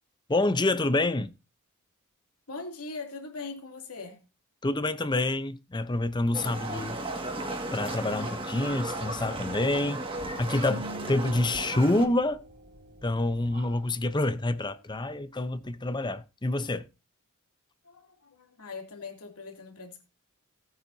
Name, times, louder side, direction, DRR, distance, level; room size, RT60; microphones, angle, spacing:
voice 1, 0.3-1.3 4.6-7.0 7.7-10.0 10.4-12.4 13.0-16.9, left 2 dB, 20° left, 0.7 m, -27 dB
voice 2, 2.5-4.2 17.8-20.0, left 3 dB, 85° left, 2.8 m, -41 dB
Livestock farm animals working animals, 6.3-12.1, right 2 dB, 25° right, 1.8 m, -35 dB
Whispering, 7.7-14.2, right 2 dB, 45° right, 2.0 m, -52 dB
sound 1, 10.7-13.3, right 1 dB, 70° right, 1.3 m, -45 dB
17.5 x 9.1 x 2.7 m
head